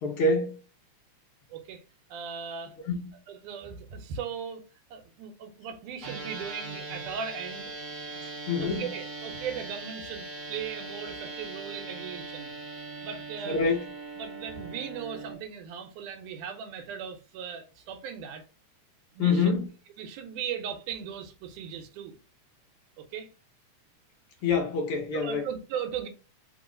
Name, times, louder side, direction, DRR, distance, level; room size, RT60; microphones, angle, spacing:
voice 1, 0.0-0.6 2.8-3.1 8.5-8.9 13.5-13.8 19.2-19.6 24.4-25.4, left 4 dB, 65° left, 1.4 m, -26 dB
voice 2, 1.5-1.8 2.1-2.8 3.3-4.6 4.9-7.7 8.1-8.2 8.6-12.5 13.0-13.6 14.2-18.4 19.1-19.6 20.0-22.2 23.0-23.3 25.1-26.1, right 7 dB, 90° right, 2.3 m, -38 dB
sound 1, 6.0-15.3, right 3 dB, 45° right, 2.0 m, -40 dB
4.7 x 3.1 x 3.7 m
omnidirectional pair, 3.5 m